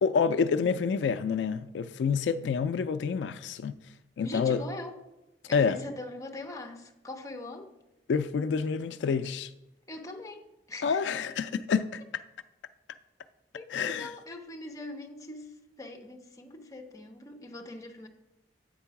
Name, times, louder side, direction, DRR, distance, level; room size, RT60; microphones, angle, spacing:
voice 1, 0.0-3.8 4.2-4.6 5.5-5.8 8.1-9.5 10.8-12.0 13.7-14.1, left 6 dB, 75° left, 0.3 m, -28 dB
voice 2, 4.2-5.0 5.5-7.7 9.9-11.1 13.5-18.1, left 2 dB, 20° left, 0.8 m, -42 dB
7.8 x 4.5 x 5.7 m
head